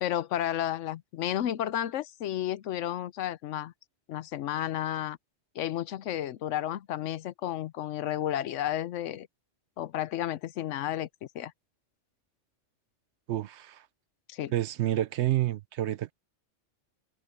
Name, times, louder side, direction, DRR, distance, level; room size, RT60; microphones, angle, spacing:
voice 1, 0.0-3.7 4.1-5.2 5.6-9.3 9.8-11.1 11.3-11.5 14.3-14.5, left 12 dB, 85° left, 1.0 m, -32 dB
voice 2, 13.3-13.9 14.5-16.1, right 13 dB, 70° right, 0.9 m, -29 dB
omnidirectional pair, 1.2 m